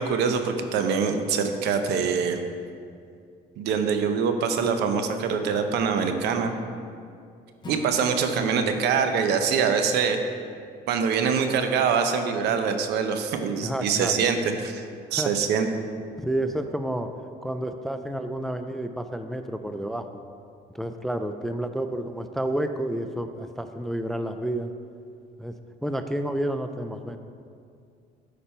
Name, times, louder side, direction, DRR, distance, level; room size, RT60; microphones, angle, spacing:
voice 1, 0.0-2.4 3.6-6.5 7.7-10.2 10.9-14.8 15.1-15.7, right 6 dB, 80° right, 7 dB, 0.7 m, -24 dB
Acoustic guitar / Strum, 7.6-11.9, left 2 dB, 25° left, 1.0 m, -46 dB
voice 2, 13.6-14.2 15.1-15.3 16.2-17.1 17.4-20.2 20.7-24.7 25.4-25.5 25.8-27.2, right 1 dB, ahead, 8 dB, 0.3 m, -30 dB
8.6 x 5.2 x 4.4 m, 2.3 s
cardioid pair, 110°, 17 cm